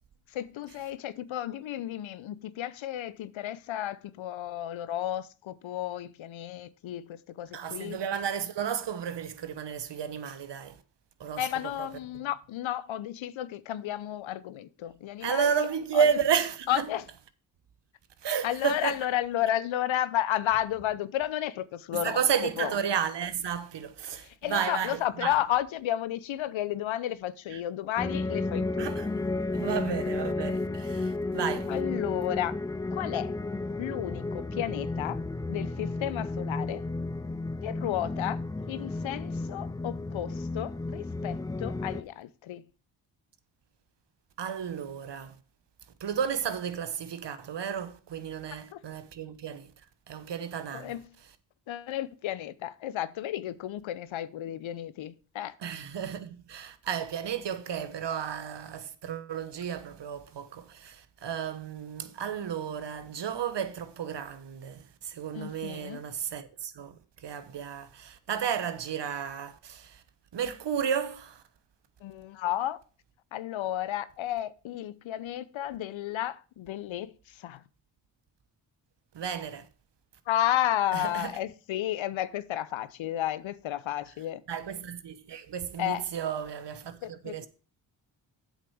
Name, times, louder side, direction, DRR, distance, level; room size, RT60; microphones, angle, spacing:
voice 1, 0.3-8.0 11.4-15.5 15.9-16.1 16.7-17.0 18.4-22.2 22.6-22.7 24.1-28.9 31.7-32.5 32.9-33.3 33.8-35.2 35.5-36.8 37.6-38.4 38.7-42.6 48.7-48.8 50.7-51.1 51.7-55.5 65.3-66.0 72.0-72.8 73.3-77.6 80.3-84.4 85.8-86.0 87.0-87.3, left 12 dB, 70° left, 0.7 m, -32 dB
voice 2, 7.5-10.8 11.2-11.5 11.8-11.9 15.2-16.9 18.2-19.0 21.9-25.3 27.5-27.6 28.8-29.2 29.5-31.7 44.4-45.4 46.0-49.7 50.1-50.9 55.6-70.0 70.3-71.4 79.1-79.7 80.9-81.4 84.5-87.5, right 7 dB, 55° right, 1.1 m, -32 dB
sound 1, 28.0-42.0, left 2 dB, 10° left, 0.3 m, -33 dB
7.9 x 6.6 x 4.8 m
supercardioid pair, 40°, 49 cm